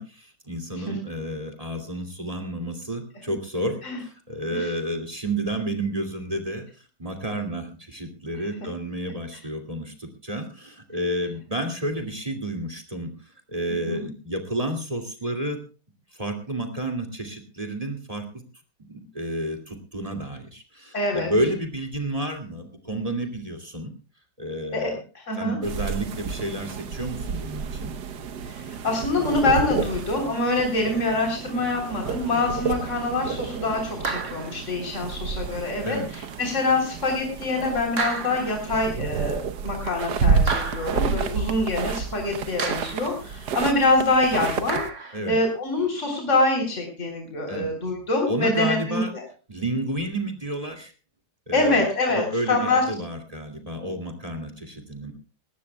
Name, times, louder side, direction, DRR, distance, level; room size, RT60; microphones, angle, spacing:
voice 1, 0.0-15.6 16.1-18.4 18.8-23.9 24.4-25.0 25.4-27.9 35.8-36.1 45.1-45.4 47.5-47.7 48.3-49.1 49.5-50.9 51.5-55.1, right 1 dB, 20° right, 5 dB, 2.4 m, -31 dB
voice 2, 20.9-21.3 24.7-25.6 28.5-49.2 51.5-52.8, left 2 dB, 45° left, 2 dB, 3.9 m, -25 dB
sound 1, 25.6-44.9, right 5 dB, 90° right, 1.6 m, -30 dB
sound 2, 34.0-34.6 36.1-36.3 38.0-38.7 40.5-41.1 42.6-43.2 44.7-45.3, right 4 dB, 50° right, 1.9 m, -31 dB
21.0 x 17.5 x 2.3 m, 0.36 s
omnidirectional pair, 1.7 m